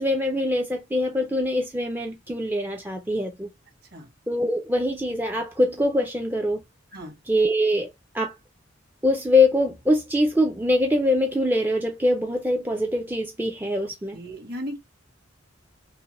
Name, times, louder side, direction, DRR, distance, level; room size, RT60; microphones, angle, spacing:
voice 1, 0.0-3.5 4.3-6.6 7.3-7.9 8.1-8.3 9.0-14.2, left 1 dB, 10° right, 0.5 m, -23 dB
voice 2, 14.1-14.8, equal, 50° right, 1.7 m, -35 dB
5.4 x 2.1 x 3.0 m
head